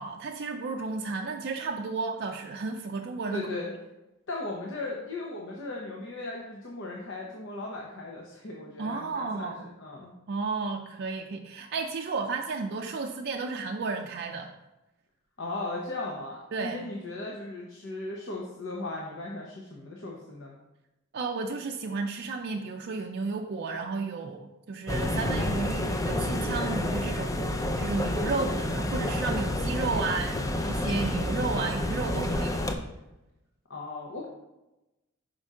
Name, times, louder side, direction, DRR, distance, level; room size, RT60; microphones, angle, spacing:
voice 1, 0.0-3.5 8.8-9.6 10.3-14.5 16.5-16.8 21.1-27.4 27.8-32.6, right 4 dB, 55° right, 2 dB, 0.4 m, -33 dB
voice 2, 3.3-3.7 4.3-10.1 15.4-20.5 33.7-34.3, left 2 dB, 65° left, -2 dB, 0.8 m, -37 dB
sound 1, 24.9-32.8, left 1 dB, 15° left, 0.4 m, -29 dB
5.4 x 5.2 x 3.6 m, 0.97 s
head